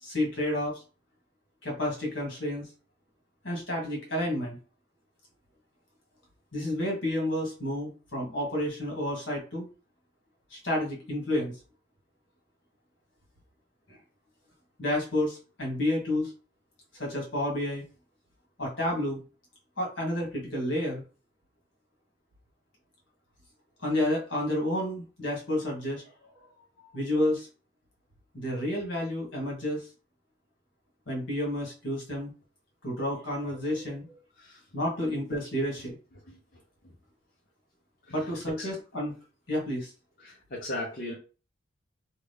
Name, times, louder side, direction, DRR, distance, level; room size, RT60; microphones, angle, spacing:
voice 1, 0.0-0.8 1.6-2.6 3.4-4.6 6.5-9.6 10.5-11.5 13.9-14.0 14.8-16.3 17.0-17.8 18.6-19.2 19.8-21.0 23.8-26.0 26.8-27.5 28.3-29.8 31.1-32.3 32.8-34.2 34.7-35.9 38.1-39.1 39.5-39.9, left 1 dB, 70° left, -1 dB, 1.5 m, -30 dB
voice 2, 40.2-41.1, left 1 dB, 45° left, -4 dB, 0.7 m, -37 dB
3.0 x 2.3 x 3.4 m, 0.34 s
head